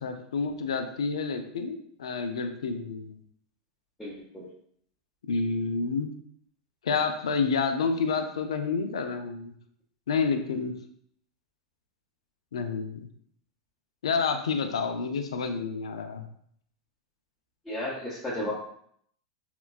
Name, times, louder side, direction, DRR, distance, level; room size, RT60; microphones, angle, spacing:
voice 1, 0.0-3.1 5.3-6.1 6.8-9.5 10.1-10.7 12.5-13.1 14.0-16.3, left 5 dB, 80° left, 7 dB, 0.4 m, -29 dB
voice 2, 4.0-4.5 17.7-18.5, left 1 dB, 10° left, -8 dB, 0.8 m, -33 dB
3.7 x 2.2 x 2.3 m, 0.65 s
hypercardioid pair, 100°, 3 cm